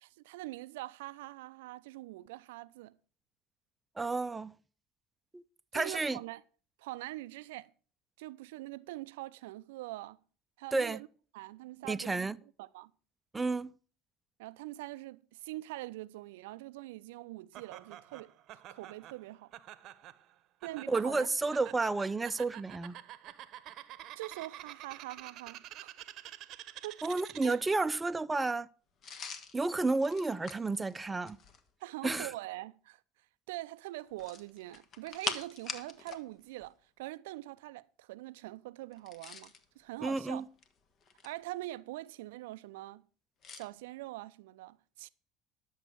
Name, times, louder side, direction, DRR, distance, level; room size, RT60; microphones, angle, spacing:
voice 1, 0.0-3.0 5.7-6.4 6.8-7.7 8.2-10.2 10.6-11.1 11.3-12.2 12.6-12.9 14.4-18.3 18.7-19.5 20.6-21.3 24.2-25.9 26.8-27.0 27.4-27.5 31.8-33.0 33.5-40.5 41.2-43.0 43.5-45.1, right 17 dB, 80° right, 0.4 m, -43 dB
voice 2, 4.0-4.5 5.3-5.4 5.7-6.2 10.7-11.0 11.8-12.4 13.3-13.7 20.9-23.0 27.0-28.7 29.5-31.4 32.0-32.3 40.0-40.4, right 3 dB, 15° right, 0.5 m, -31 dB
Laughter, 17.5-27.8, right 12 dB, 60° right, 0.8 m, -49 dB
sound 1, 29.0-31.7 34.1-36.3 36.5-36.7 38.9-39.6 40.4-41.5 43.4-43.7, left 5 dB, 50° left, 1.5 m, -43 dB
11.0 x 7.2 x 6.8 m
hypercardioid pair, 80°, 0 cm